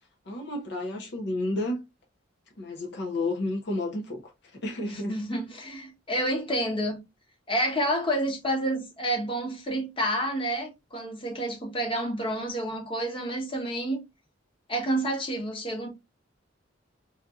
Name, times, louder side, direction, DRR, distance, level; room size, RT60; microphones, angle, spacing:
voice 1, 0.2-1.8 2.6-5.2, left 2 dB, 60° left, 0.6 m, -31 dB
voice 2, 4.8-7.0 7.5-14.0 14.7-15.9, right 1 dB, 25° left, 1.1 m, -29 dB
4.0 x 2.6 x 2.3 m
head